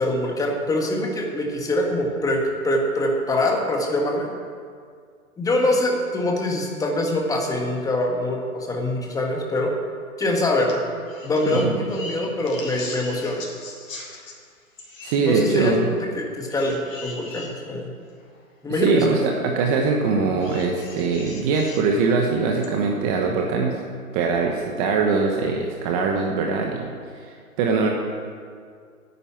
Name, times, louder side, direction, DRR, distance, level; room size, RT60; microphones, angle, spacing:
voice 1, 0.0-4.3 5.4-9.7 10.2-10.8 11.2-13.4 15.2-15.8 16.1-17.9 18.6-19.1, left 1 dB, 10° left, 1 dB, 1.5 m, -24 dB
sound 1, 10.6-10.8 11.0-14.4 14.8-15.2 16.5-17.5 18.3-18.4 20.4-21.9 22.6-22.7, left 3 dB, 60° left, 3.5 m, -39 dB
voice 2, 15.0-15.8 18.8-23.7 24.1-26.9 27.3-27.9, right 4 dB, 25° right, 1 dB, 1.2 m, -22 dB
10.0 x 9.7 x 8.7 m, 2.1 s
figure-of-eight pair, 130°, 44 cm